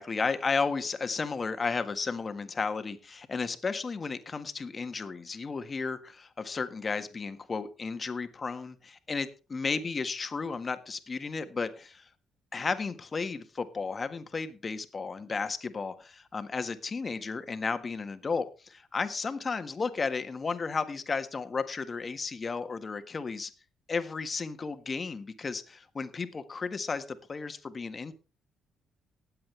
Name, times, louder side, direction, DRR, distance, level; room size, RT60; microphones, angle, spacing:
voice 1, 0.0-12.1 12.5-23.5 23.9-28.1, left 4 dB, 40° left, 10 dB, 1.6 m, -33 dB
19.0 x 7.8 x 3.3 m, 0.34 s
supercardioid pair, 65°, 0 cm